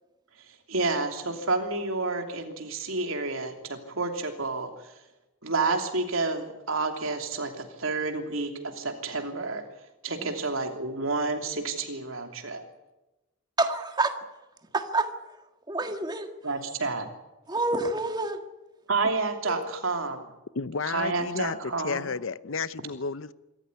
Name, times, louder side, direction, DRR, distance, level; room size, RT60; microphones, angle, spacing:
voice 1, 0.7-4.7 5.4-9.6 10.0-12.6 16.4-17.1 18.9-20.3 20.9-22.1, right 3 dB, 70° right, 3.1 m, -29 dB
voice 2, 13.6-14.1 14.7-15.1 15.7-16.3 17.5-18.4 19.5-19.7, right 2 dB, 20° right, 1.7 m, -28 dB
voice 3, 20.5-23.3, left 5 dB, 65° left, 0.7 m, -32 dB
25.5 x 14.0 x 9.9 m
head